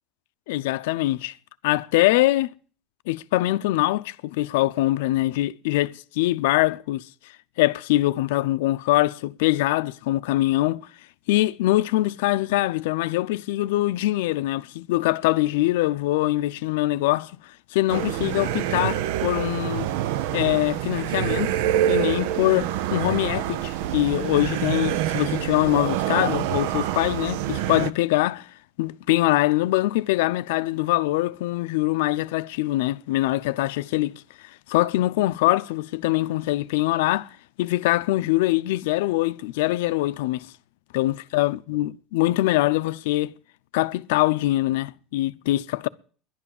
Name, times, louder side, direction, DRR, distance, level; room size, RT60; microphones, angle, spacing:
voice 1, 0.5-1.3 1.6-2.5 3.1-7.0 7.6-10.9 11.3-17.3 17.7-19.9 20.3-21.5 21.9-28.5 28.8-34.1 34.7-37.3 37.6-40.5 40.9-43.3 43.7-45.9, left 17 dB, 90° left, 0.6 m, -23 dB
sound 1, 17.9-27.9, right 12 dB, 80° right, 0.6 m, -26 dB
11.0 x 11.0 x 7.1 m
supercardioid pair, 125°, 0 cm